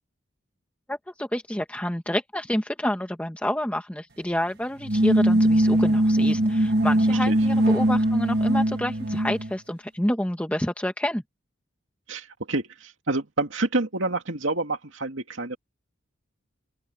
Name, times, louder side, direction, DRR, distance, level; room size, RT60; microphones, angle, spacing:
voice 1, 0.9-11.2, left 1 dB, 5° left, 1.2 m, -28 dB
sound 1, 4.8-9.5, right 1 dB, 50° right, 1.9 m, -21 dB
voice 2, 12.1-15.6, right 2 dB, 70° right, 2.5 m, -28 dB
open air
head